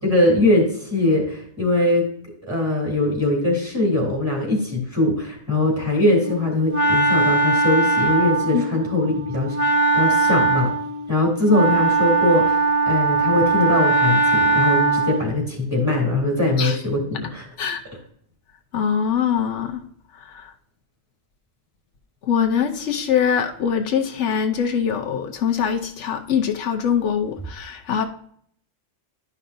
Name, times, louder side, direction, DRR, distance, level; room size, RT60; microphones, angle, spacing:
voice 1, 0.0-2.1 2.5-9.6 9.9-10.7 11.1-17.4, left 2 dB, 15° right, 2.8 m, -21 dB
Wind instrument woodwind instrument, 6.2-15.3, right 3 dB, 50° left, 1.1 m, -20 dB
voice 2, 18.7-19.8 20.2-20.5 22.2-28.0, left 7 dB, 80° left, 1.1 m, -23 dB
11.0 x 5.5 x 2.6 m
omnidirectional pair, 1.2 m